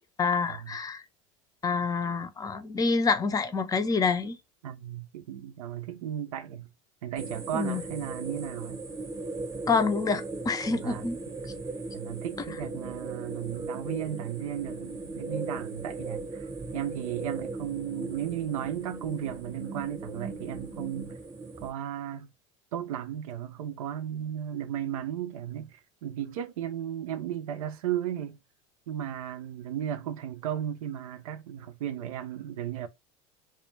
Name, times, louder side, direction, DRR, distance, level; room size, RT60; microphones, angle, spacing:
voice 1, 0.2-1.0 1.6-4.4 7.5-7.8 9.7-11.2, left 4 dB, 20° left, 0.4 m, -27 dB
voice 2, 4.6-6.7 7.0-8.8 10.7-11.1 11.9-21.2 21.6-22.3 22.7-28.4 28.9-32.9, right 10 dB, 85° right, 0.4 m, -35 dB
sound 1, 7.2-21.7, right 3 dB, 20° right, 0.7 m, -38 dB
2.2 x 2.1 x 3.1 m
hypercardioid pair, 90°, 18 cm